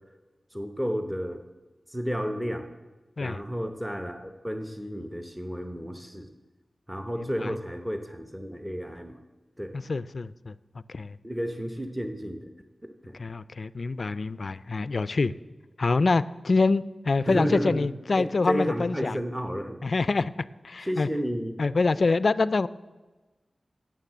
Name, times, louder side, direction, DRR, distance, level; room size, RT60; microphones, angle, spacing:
voice 1, 0.5-1.4 1.9-2.7 3.2-6.3 6.9-9.2 9.6-9.7 11.2-12.5 12.8-13.1 17.3-17.9 18.2-19.8 20.8-21.6 21.9-22.0, equal, 10° right, 6 dB, 0.8 m, -32 dB
voice 2, 9.7-10.5 10.9-11.2 13.2-15.3 15.8-19.2 19.8-20.3 20.6-21.1 21.6-22.7, left 3 dB, 60° left, 17 dB, 0.3 m, -25 dB
9.2 x 7.4 x 7.2 m, 1.2 s
wide cardioid pair, 70°, 0 cm